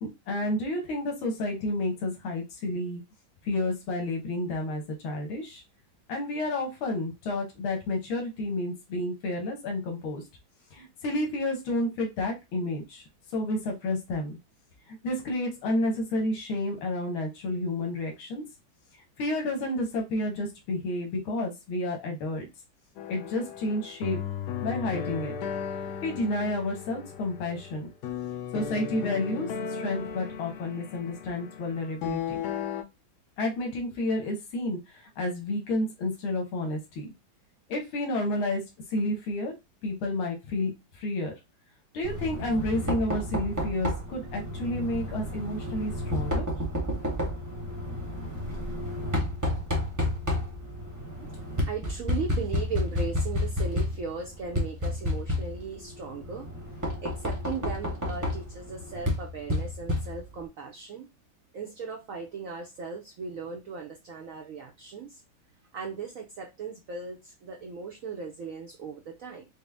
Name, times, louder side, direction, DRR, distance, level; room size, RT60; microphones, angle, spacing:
voice 1, 0.0-3.0 3.4-5.6 6.1-10.2 10.7-13.0 13.3-14.4 15.0-18.4 19.2-22.5 23.1-24.2 24.6-25.3 26.0-27.9 28.5-32.4 33.4-37.1 37.7-38.6 38.9-39.5 39.8-41.3 41.9-46.4, left 1 dB, 90° left, 1.9 m, -30 dB
sound 1, 23.0-32.8, left 7 dB, 70° left, 1.0 m, -35 dB
Knock, 42.0-60.5, left 1 dB, 20° right, 0.5 m, -31 dB
voice 2, 51.7-61.1 61.5-65.2 65.7-69.5, right 5 dB, 85° right, 0.7 m, -37 dB
4.9 x 2.0 x 3.3 m
omnidirectional pair, 2.2 m